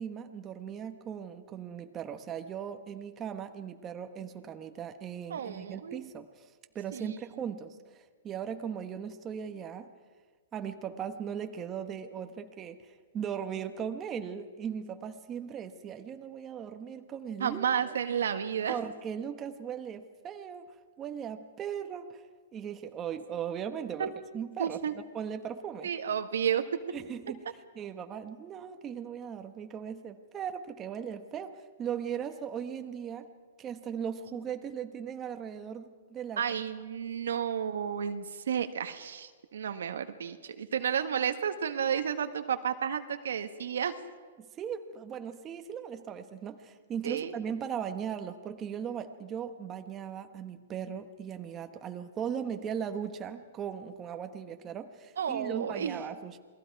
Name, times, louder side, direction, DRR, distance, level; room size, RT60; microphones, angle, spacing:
voice 1, 0.0-6.4 6.7-7.8 8.2-9.9 10.5-17.7 18.7-20.7 21.0-22.2 22.5-24.8 25.1-25.9 26.9-27.4 27.7-33.3 33.6-36.4 44.4-56.4, right 8 dB, 20° right, 7 dB, 1.2 m, -38 dB
voice 2, 5.3-6.0 6.9-7.2 17.4-18.8 24.0-24.1 24.6-24.9 25.8-26.6 36.4-43.9 47.0-47.3 55.2-56.0, right 8 dB, 80° right, 8 dB, 1.5 m, -32 dB
28.0 x 20.5 x 4.8 m, 1.5 s
hypercardioid pair, 145°, 0 cm